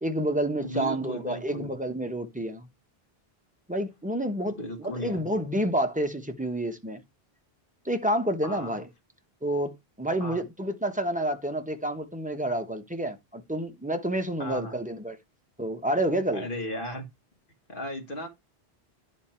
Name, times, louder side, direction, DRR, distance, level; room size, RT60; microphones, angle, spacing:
voice 1, 0.0-2.7 3.7-4.6 4.8-7.0 7.8-8.9 9.4-15.2 15.6-16.5, right 1 dB, 10° right, 0.8 m, -29 dB
voice 2, 0.6-1.7 4.5-5.2 8.4-8.8 10.2-10.4 14.4-14.8 16.3-17.1 17.7-18.3, equal, 60° left, 1.9 m, -35 dB
10.5 x 3.6 x 4.3 m
omnidirectional pair, 1.0 m